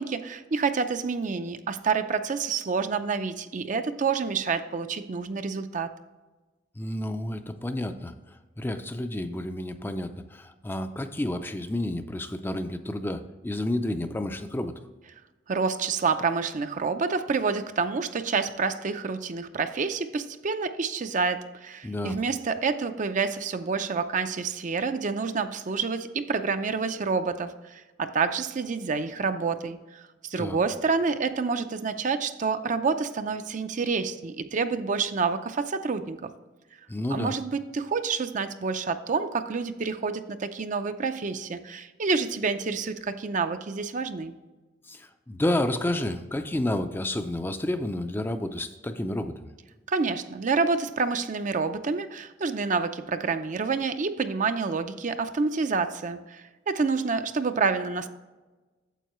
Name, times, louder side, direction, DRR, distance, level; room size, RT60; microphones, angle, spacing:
voice 1, 0.0-5.9 15.5-36.3 37.1-44.3 49.9-58.1, right 4 dB, 45° right, 9 dB, 0.5 m, -28 dB
voice 2, 6.8-8.1 8.6-14.7 21.8-22.2 30.4-30.6 36.9-37.3 44.9-49.5, left 1 dB, 10° left, 8 dB, 0.4 m, -30 dB
9.1 x 7.2 x 3.0 m, 1.2 s
head